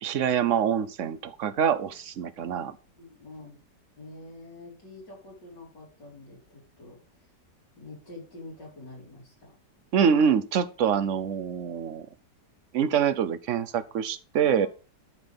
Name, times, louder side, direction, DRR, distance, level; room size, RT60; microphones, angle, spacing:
voice 1, 0.0-2.8 9.9-12.1 12.7-14.7, right 7 dB, 55° right, 0.9 m, -25 dB
voice 2, 3.0-3.6 4.0-7.3 7.8-9.6 14.4-14.7, left 2 dB, 85° left, 5.7 m, -46 dB
12.5 x 5.8 x 5.3 m
omnidirectional pair, 1.9 m